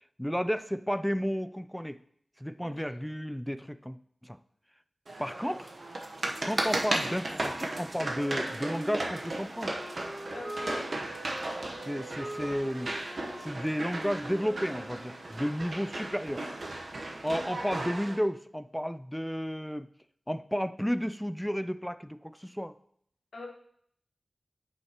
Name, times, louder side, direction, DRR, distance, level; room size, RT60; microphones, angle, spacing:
voice 1, 0.2-2.0 2.4-4.0 4.2-4.4 5.2-5.7 6.4-9.7 11.9-12.9 13.4-16.5 17.2-19.9 20.3-22.7, equal, ahead, 13 dB, 0.4 m, -32 dB
voice 2, 2.6-2.9 10.3-10.9 23.3-23.5, left 2 dB, 90° left, 1 dB, 1.4 m, -42 dB
sound 1, 5.1-18.2, right 2 dB, 60° right, 0.9 m, -35 dB
Wind instrument woodwind instrument, 8.1-15.3, right 1 dB, 90° right, 2.3 m, -43 dB
9.2 x 5.6 x 2.9 m, 0.65 s
wide cardioid pair, 95°, 0 cm